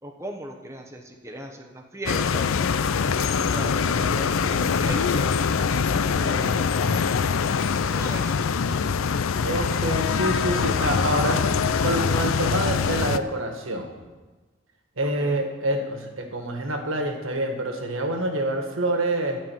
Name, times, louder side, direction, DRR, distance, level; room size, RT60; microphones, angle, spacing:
voice 1, 0.0-2.5 3.0-5.3 6.1-7.1 7.9-8.4 15.0-15.4, right 1 dB, 15° right, 2 dB, 0.9 m, -38 dB
sound 1, 2.1-13.2, left 5 dB, 85° left, 0.5 m, -23 dB
voice 2, 9.4-11.4 11.8-13.9 15.0-19.4, right 1 dB, 80° right, 4 dB, 1.6 m, -27 dB
12.5 x 5.5 x 9.0 m, 1.3 s
head